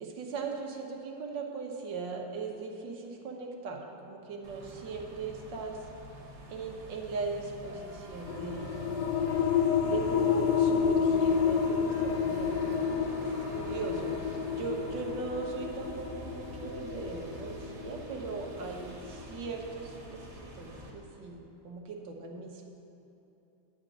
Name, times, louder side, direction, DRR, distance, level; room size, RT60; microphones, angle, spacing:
voice 1, 0.0-5.9 6.5-9.1 9.8-12.8 13.1-20.3 20.5-22.6, right 4 dB, 90° right, 1 dB, 1.7 m, -39 dB
sound 1, 4.4-20.9, right 1 dB, 40° right, 1.4 m, -45 dB
sound 2, 8.3-19.5, left 7 dB, 75° left, 1.1 m, -30 dB
10.0 x 5.1 x 7.9 m, 2.9 s
omnidirectional pair, 1.9 m